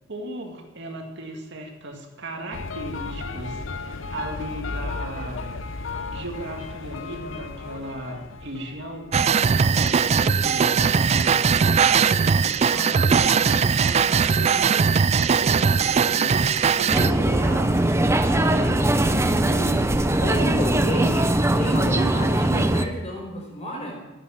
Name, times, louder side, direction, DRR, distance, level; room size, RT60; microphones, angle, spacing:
voice 1, 0.1-5.4 6.1-19.8, right 1 dB, 60° right, 2 dB, 2.1 m, -36 dB
sound 1, 2.5-9.2, left 3 dB, 75° left, 0.8 m, -34 dB
sound 2, 9.1-17.1, right 6 dB, 35° right, 0.3 m, -20 dB
sound 3, 16.9-22.9, right 1 dB, 15° right, 0.7 m, -21 dB
voice 2, 20.2-24.0, right 1 dB, 35° left, 0 dB, 5.3 m, -31 dB
13.0 x 9.9 x 7.4 m, 1.1 s
head